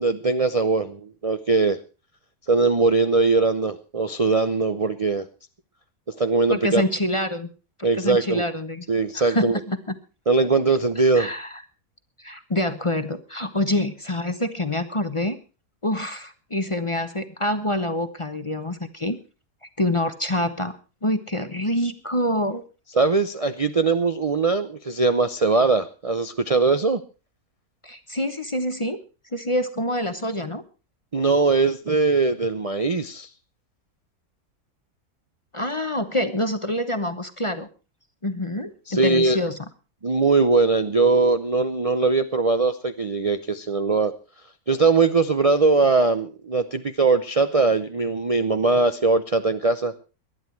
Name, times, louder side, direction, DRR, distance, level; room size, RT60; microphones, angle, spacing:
voice 1, 0.0-1.8 2.5-5.3 6.2-6.8 7.8-8.4 8.9-9.5 10.3-11.3 22.9-27.0 31.1-33.3 38.9-39.4 40.0-44.1 44.7-49.9, right 3 dB, 35° right, 10 dB, 0.6 m, -21 dB
voice 2, 6.5-7.5 7.9-8.9 9.1-9.9 11.1-11.6 12.2-15.4 15.8-19.2 19.8-20.8 21.0-22.6 27.8-29.0 29.3-30.6 35.5-37.7 38.2-39.6, left 1 dB, 25° left, 10 dB, 0.9 m, -26 dB
19.0 x 11.5 x 4.6 m, 0.35 s
omnidirectional pair, 1.6 m